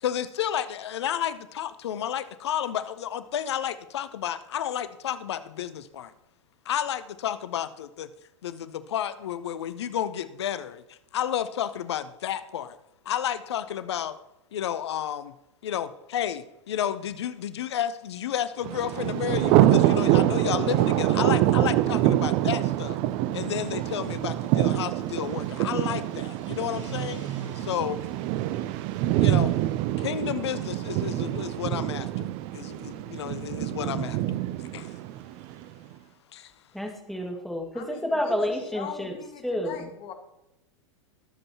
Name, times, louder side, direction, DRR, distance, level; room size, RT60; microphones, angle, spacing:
voice 1, 0.0-6.1 6.7-8.1 8.4-12.8 13.0-14.2 14.5-15.3 15.6-23.0 23.3-27.2 27.5-28.0 29.2-29.5 30.0-34.9 36.3-36.5, left 10 dB, 60° left, 14 dB, 0.8 m, -31 dB
Thunder, 18.6-35.6, right 14 dB, 35° right, 0.6 m, -25 dB
sound 1, 23.5-29.8, right 6 dB, 75° right, 3.2 m, -45 dB
voice 2, 36.7-39.1 39.4-39.9, left 1 dB, ahead, 1 dB, 2.0 m, -29 dB
voice 3, 37.7-40.1, left 8 dB, 35° left, 6 dB, 1.9 m, -41 dB
21.0 x 7.7 x 3.0 m, 0.89 s
figure-of-eight pair, 95°, 16 cm